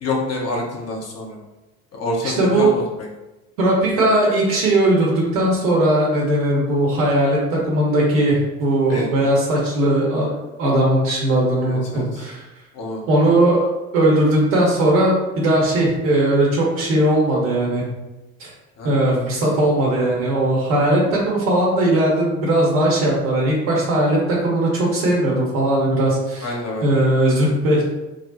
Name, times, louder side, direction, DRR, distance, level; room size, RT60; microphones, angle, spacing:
voice 1, 0.0-1.4 1.9-3.1 8.9-9.1 11.6-12.2 12.7-13.0 18.8-19.5 26.4-26.9, left 2 dB, 35° left, -1 dB, 1.0 m, -27 dB
voice 2, 2.2-2.7 3.6-12.4 13.1-13.7 13.9-17.8 18.4-18.5 18.8-26.5 26.8-27.8, right 1 dB, 65° right, -3 dB, 1.4 m, -18 dB
3.4 x 2.2 x 4.1 m, 1.0 s
figure-of-eight pair, 60°, 42 cm